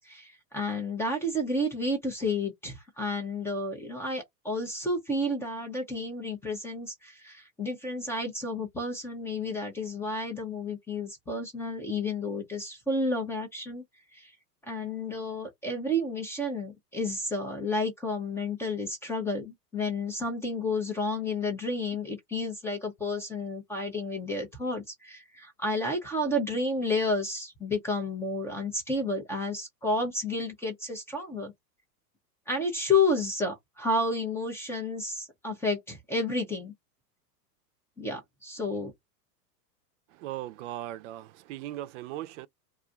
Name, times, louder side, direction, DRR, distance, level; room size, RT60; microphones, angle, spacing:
voice 1, 0.0-13.8 14.1-14.3 14.6-31.5 32.5-36.7 38.0-38.9, left 2 dB, 5° left, 0.4 m, -31 dB
voice 2, 40.1-42.5, right 14 dB, 50° right, 0.5 m, -38 dB
2.5 x 2.4 x 3.8 m
hypercardioid pair, 115°, 49 cm